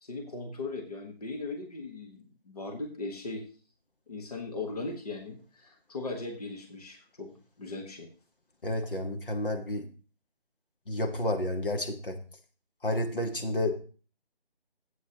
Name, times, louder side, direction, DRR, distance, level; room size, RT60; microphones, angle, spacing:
voice 1, 0.0-3.4 4.1-8.1, left 3 dB, 40° left, 3 dB, 1.2 m, -38 dB
voice 2, 8.6-9.9 10.9-12.2 12.8-13.7, left 1 dB, 60° left, 5 dB, 1.4 m, -30 dB
13.0 x 8.3 x 2.9 m, 0.38 s
figure-of-eight pair, 160°, 30 cm